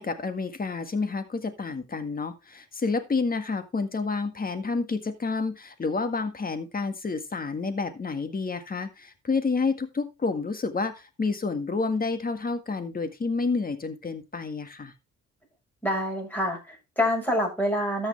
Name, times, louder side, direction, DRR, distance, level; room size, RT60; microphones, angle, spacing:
voice 1, 0.0-14.9, left 4 dB, 30° left, 9 dB, 1.8 m, -29 dB
voice 2, 15.8-18.1, left 1 dB, 5° left, -1 dB, 6.9 m, -26 dB
13.0 x 6.5 x 3.4 m, 0.25 s
cardioid pair, 90°, 30 cm